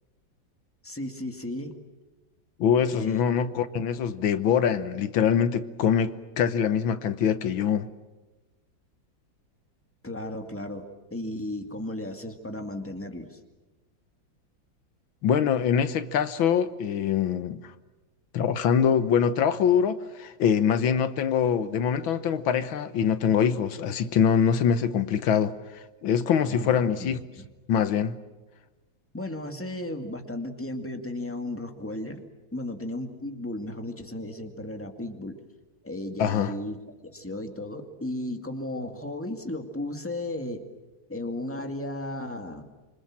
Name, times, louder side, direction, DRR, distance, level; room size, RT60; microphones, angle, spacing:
voice 1, 0.8-1.8 2.9-3.2 10.0-13.4 21.4-21.5 26.5-27.5 29.1-35.4 35.8-40.7 41.1-42.7, left 1 dB, 5° left, 2.1 m, -35 dB
voice 2, 2.6-7.9 15.2-17.6 18.3-27.2 27.7-28.2 36.2-36.5, left 8 dB, 90° left, 1.9 m, -24 dB
26.5 x 25.5 x 7.4 m
omnidirectional pair, 2.1 m